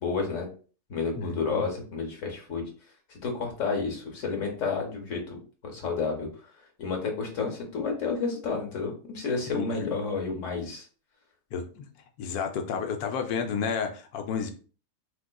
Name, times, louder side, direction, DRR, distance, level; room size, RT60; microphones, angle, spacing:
voice 1, 0.0-0.5 0.9-2.6 3.1-5.4 5.6-6.3 6.8-10.8, left 4 dB, 60° left, 2 dB, 1.1 m, -30 dB
voice 2, 1.2-1.7 9.5-9.7 11.5-11.9 12.2-14.5, left 6 dB, 85° left, 5 dB, 1.1 m, -31 dB
3.6 x 2.8 x 2.2 m, 0.39 s
omnidirectional pair, 1.5 m